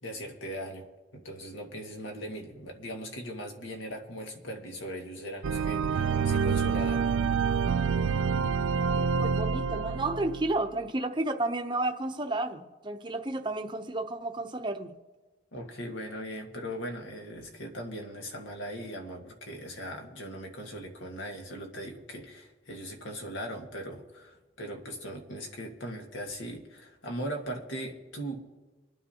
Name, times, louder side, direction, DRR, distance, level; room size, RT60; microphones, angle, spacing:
voice 1, 0.0-0.9 1.1-7.1 15.5-28.4, equal, 85° left, 1.9 m, -39 dB
sound 1, 5.4-10.6, right 6 dB, 80° right, 0.4 m, -27 dB
voice 2, 8.8-14.9, right 2 dB, 25° right, 0.7 m, -32 dB
27.0 x 9.5 x 2.9 m
head